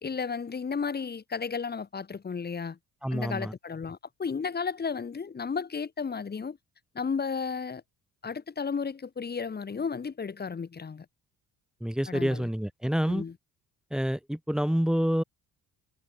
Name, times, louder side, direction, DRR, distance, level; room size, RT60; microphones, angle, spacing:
voice 1, 0.0-2.8 3.1-6.6 6.9-7.8 8.2-11.1 12.1-12.5 13.1-13.3, left 5 dB, 30° left, 2.7 m, -33 dB
voice 2, 3.0-3.5 11.8-13.2 13.9-15.2, equal, ahead, 0.9 m, -27 dB
cardioid pair, 130°, 34 cm